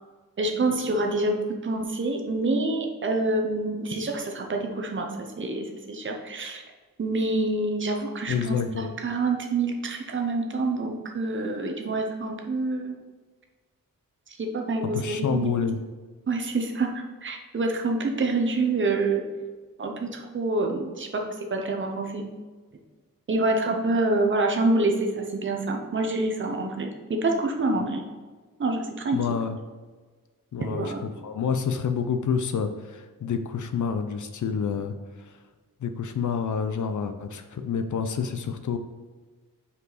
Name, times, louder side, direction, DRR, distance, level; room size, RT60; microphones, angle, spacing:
voice 1, 0.4-5.1 5.4-6.6 7.0-12.9 14.4-15.6 16.3-19.2 19.8-22.3 23.3-28.0 28.6-29.2 30.6-31.0, right 2 dB, 35° right, 3 dB, 0.8 m, -27 dB
voice 2, 8.3-8.9 14.8-15.8 29.1-29.6 30.5-34.9 35.8-38.8, left 6 dB, 60° left, 8 dB, 0.6 m, -28 dB
5.4 x 4.7 x 4.0 m, 1.4 s
wide cardioid pair, 175°, 34 cm